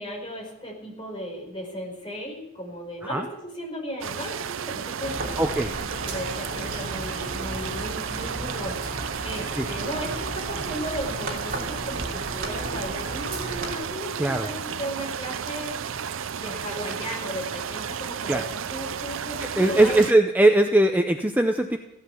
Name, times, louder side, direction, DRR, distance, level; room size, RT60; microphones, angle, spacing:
voice 1, 0.0-15.8 16.4-20.0, equal, 25° left, -1 dB, 5.1 m, -36 dB
sound 1, 4.0-20.1, right 7 dB, 70° right, 0.5 m, -33 dB
sound 2, 5.0-13.7, right 1 dB, 45° right, 3.0 m, -35 dB
voice 2, 5.4-5.7 9.6-9.7 14.2-14.5 18.3-18.4 19.4-21.8, right 1 dB, 10° right, 5 dB, 0.6 m, -20 dB
16.5 x 11.5 x 7.0 m, 0.88 s
head